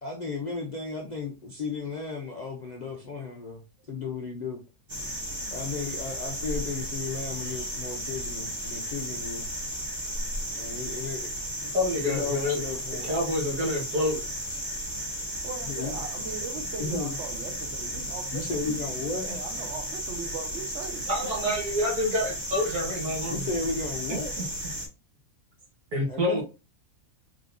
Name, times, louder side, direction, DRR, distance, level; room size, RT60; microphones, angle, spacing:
voice 1, 0.0-3.6 3.9-4.6 5.5-9.5 10.5-11.3 12.0-13.2 15.7-16.0 16.6-17.2 18.3-19.4 23.3-24.5 26.1-26.4, left 4 dB, 70° left, 0.4 m, -34 dB
sound 1, 4.9-24.9, equal, 20° right, 1.1 m, -34 dB
voice 2, 11.7-12.6 13.0-14.3 21.1-23.5 24.1-24.5 25.9-26.4, left 1 dB, 70° right, 1.9 m, -28 dB
voice 3, 15.4-18.8 19.3-21.1 21.4-21.6, right 5 dB, 55° right, 1.0 m, -39 dB
4.1 x 3.7 x 2.6 m
omnidirectional pair, 1.7 m